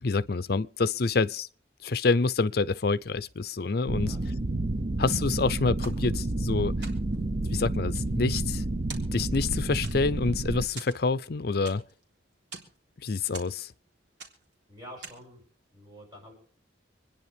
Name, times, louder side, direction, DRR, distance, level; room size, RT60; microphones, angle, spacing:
voice 1, 0.0-1.5 1.8-4.2 5.0-6.7 7.5-8.6 9.1-11.8 13.0-13.7, left 3 dB, 55° left, 0.6 m, -27 dB
sound 1, 3.9-10.7, right 2 dB, 40° right, 0.7 m, -30 dB
voice 2, 4.0-4.4 14.7-15.4 15.7-16.3, equal, 20° right, 6.4 m, -48 dB
sound 2, 5.8-6.5 6.8-7.3 7.7-8.6 8.9-9.5 9.8-10.3 10.8-12.0 12.3-12.8 13.3-13.9 14.2-14.6 15.0-15.4, right 4 dB, 65° right, 3.4 m, -45 dB
26.5 x 10.0 x 3.5 m
head